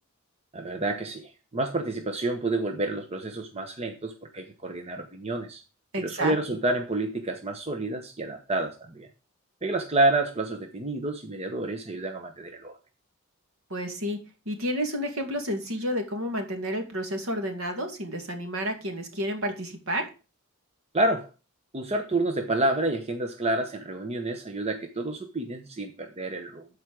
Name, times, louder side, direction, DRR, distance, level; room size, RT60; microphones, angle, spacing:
voice 1, 0.5-5.6 6.0-9.1 9.6-12.8 20.9-21.3 21.7-26.7, right 2 dB, 30° right, 5 dB, 1.0 m, -29 dB
voice 2, 5.9-6.3 13.7-14.2 14.5-20.1, equal, 70° right, 5 dB, 2.3 m, -30 dB
12.5 x 5.0 x 4.8 m, 0.31 s
head